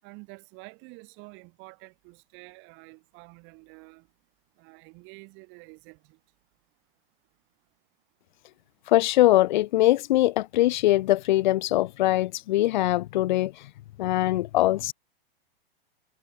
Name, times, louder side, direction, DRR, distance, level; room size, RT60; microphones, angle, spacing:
voice 1, 0.0-4.1 4.6-6.2, right 30 dB, 40° right, 7.3 m, -49 dB
voice 2, 8.9-13.5 14.0-14.9, left 15 dB, 50° left, 0.5 m, -22 dB
figure-of-eight pair, 100°, 30 cm